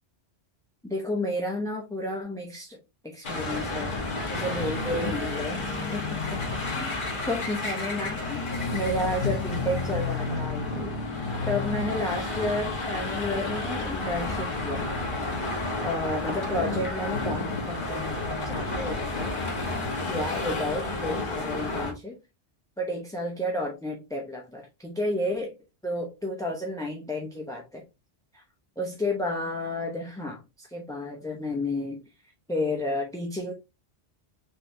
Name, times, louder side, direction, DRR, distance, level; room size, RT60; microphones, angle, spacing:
voice 1, 0.8-2.8 3.0-4.0 4.3-5.6 5.9-6.0 6.3-10.9 11.5-14.9 15.8-18.2 18.4-19.3 20.1-22.2 22.8-25.5 25.8-27.8 28.3-28.4 28.8-32.0 32.5-33.5, left 1 dB, 5° left, 0 dB, 0.7 m, -31 dB
sound 1, 3.2-21.9, left 3 dB, 45° left, 1.3 m, -31 dB
5.3 x 3.4 x 2.6 m, 0.25 s
omnidirectional pair, 1.2 m